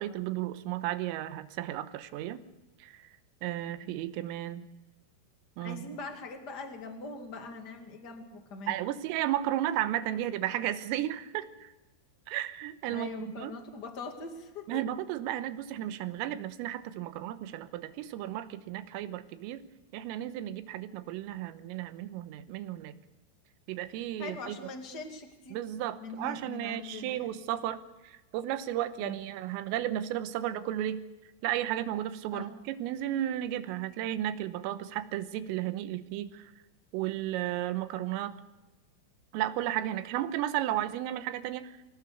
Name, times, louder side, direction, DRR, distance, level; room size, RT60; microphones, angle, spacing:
voice 1, 0.0-2.4 2.8-3.1 3.4-4.7 5.6-5.9 8.7-11.7 12.3-13.6 14.7-19.6 19.9-23.0 23.7-24.7 25.5-31.0 31.4-36.5 36.9-38.4 39.3-41.8, right 12 dB, 90° right, 11 dB, 3.7 m, -34 dB
voice 2, 5.6-8.7 12.9-14.7 24.2-25.6 26.0-27.4 29.0-29.2 32.3-32.5, left 3 dB, 35° left, 4 dB, 1.6 m, -42 dB
25.0 x 17.5 x 6.8 m, 1.1 s
omnidirectional pair, 5.8 m